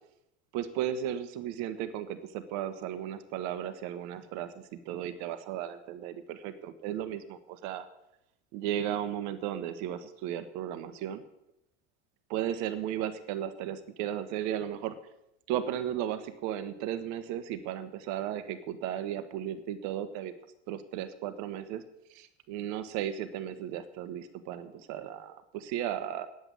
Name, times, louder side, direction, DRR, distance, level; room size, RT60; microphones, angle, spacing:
voice 1, 0.5-7.9 8.5-11.2 12.3-15.0 15.5-20.3 20.7-21.8 22.1-26.3, right 10 dB, 60° right, 11 dB, 1.3 m, -35 dB
10.0 x 7.9 x 9.4 m, 0.83 s
hypercardioid pair, 90°, 32 cm